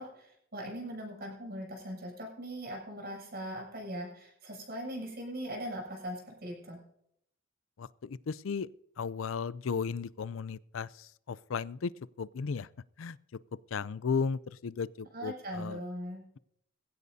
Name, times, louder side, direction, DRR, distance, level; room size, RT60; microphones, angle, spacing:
voice 1, 0.0-6.8 15.1-16.2, equal, 50° right, 7.7 m, -40 dB
voice 2, 7.8-8.7 9.0-11.9 12.2-12.7 13.0-13.2 13.7-15.8, left 5 dB, 80° left, 0.5 m, -35 dB
20.0 x 16.0 x 2.7 m
head